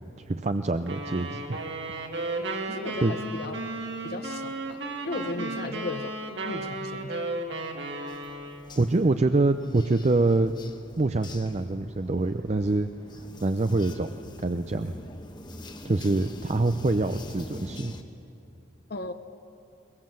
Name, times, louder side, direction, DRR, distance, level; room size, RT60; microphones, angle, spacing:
voice 1, 0.2-1.6 1.9-2.0 3.0-3.1 8.8-10.5 11.0-12.9 13.2-14.1 14.4-15.0 15.8-17.9, right 2 dB, 35° right, 9 dB, 0.5 m, -25 dB
sound 1, 0.9-8.8, right 2 dB, 60° right, 2.2 m, -34 dB
voice 2, 2.7-3.6 4.0-6.2 6.4-7.2 18.9-19.1, left 2 dB, 50° left, 8 dB, 0.8 m, -36 dB
sound 2, 8.1-18.0, left 1 dB, 20° left, 1.1 m, -45 dB
22.0 x 21.5 x 7.6 m, 2.7 s
head